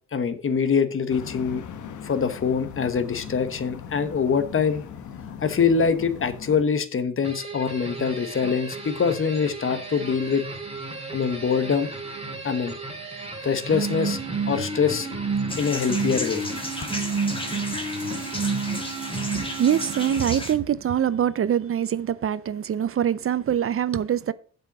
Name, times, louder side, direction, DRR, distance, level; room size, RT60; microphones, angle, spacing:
voice 1, 0.1-1.6 2.0-4.8 5.4-10.4 11.1-11.9 12.4-12.7 13.4-14.2 14.5-15.1 15.6-16.4, left 6 dB, 45° left, 1.2 m, -24 dB
sound 1, 1.1-6.6, left 7 dB, 85° left, 1.1 m, -39 dB
sound 2, 7.2-20.4, right 3 dB, 20° right, 3.3 m, -31 dB
sound 3, 15.5-20.5, left 1 dB, 20° left, 2.0 m, -34 dB
voice 2, 19.3-24.3, right 9 dB, 50° right, 0.6 m, -24 dB
7.8 x 5.7 x 6.0 m
cardioid pair, 70°, 29 cm